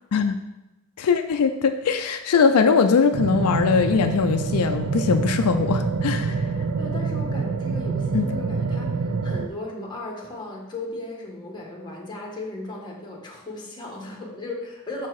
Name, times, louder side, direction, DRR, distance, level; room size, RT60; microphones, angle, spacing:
voice 1, 1.0-6.5 8.1-8.3, left 5 dB, 85° left, 8 dB, 0.4 m, -21 dB
sound 1, 3.1-9.5, right 4 dB, 60° right, 0.4 m, -26 dB
voice 2, 6.8-15.1, left 2 dB, 20° left, -1 dB, 1.3 m, -36 dB
5.9 x 4.6 x 4.6 m, 0.98 s
head